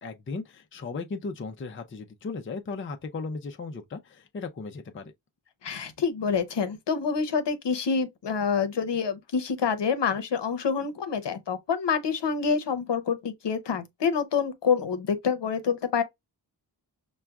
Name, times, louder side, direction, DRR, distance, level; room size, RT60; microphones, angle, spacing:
voice 1, 0.0-5.1, left 4 dB, 30° left, 0.4 m, -36 dB
voice 2, 5.6-16.0, left 6 dB, 70° left, 0.8 m, -27 dB
5.7 x 2.3 x 2.3 m
wide cardioid pair, 100°, 43 cm